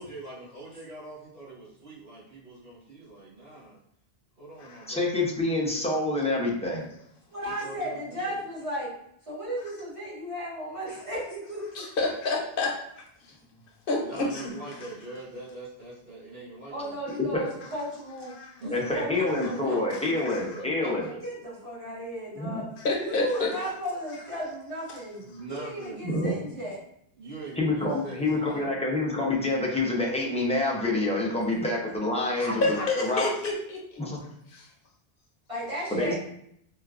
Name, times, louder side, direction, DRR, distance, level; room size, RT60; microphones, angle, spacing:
voice 1, 0.0-3.8 4.4-5.1 7.4-8.4 14.0-17.3 18.6-20.0 20.3-21.2 25.2-26.4 27.2-28.8, right 2 dB, 65° right, -9 dB, 1.9 m, -43 dB
voice 2, 4.9-6.9 17.2-17.4 18.7-21.0 22.4-22.6 26.0-26.3 27.6-33.3 34.0-34.2 35.9-36.1, left 2 dB, 10° left, -2 dB, 0.4 m, -27 dB
voice 3, 7.3-8.9 9.3-12.0 16.7-18.7 19.0-20.1 21.2-22.7 23.0-25.2 25.5-26.8 31.6-31.7 32.4-32.8 33.1-33.2 35.5-36.1, equal, 30° right, -7 dB, 1.3 m, -35 dB
voice 4, 11.7-13.3 13.9-14.5 18.3-18.5 19.9-20.4 22.8-23.5 32.4-34.0 34.5-34.7, left 2 dB, 60° left, 0 dB, 0.8 m, -29 dB
4.4 x 2.3 x 2.4 m, 0.73 s
omnidirectional pair, 1.0 m